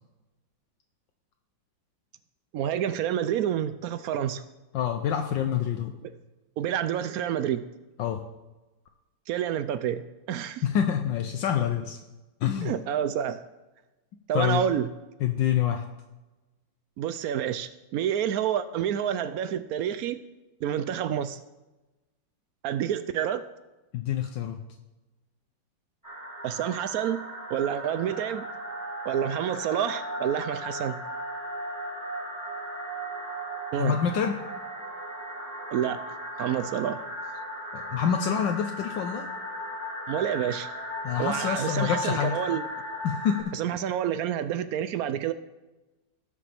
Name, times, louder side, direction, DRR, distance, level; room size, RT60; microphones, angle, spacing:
voice 1, 2.5-4.4 6.0-6.1 6.6-7.6 9.3-10.0 10.3-10.6 12.6-13.4 14.3-14.9 17.0-20.2 20.6-21.4 22.6-23.4 26.4-27.2 27.5-28.5 29.0-31.0 33.7-33.9 35.7-37.4 40.1-40.7 41.2-42.7 43.5-45.3, right 9 dB, 80° right, 12 dB, 0.8 m, -28 dB
voice 2, 4.7-5.9 8.0-8.2 10.6-12.0 12.4-12.7 14.3-14.6 15.2-15.8 23.9-24.6 33.8-34.4 37.7-39.3 41.0-42.3 43.0-43.3, left 8 dB, 75° left, 4 dB, 1.4 m, -26 dB
sound 1, 26.0-43.4, equal, 10° right, 2.1 m, -36 dB
18.5 x 6.8 x 3.4 m, 1.1 s
omnidirectional pair, 2.1 m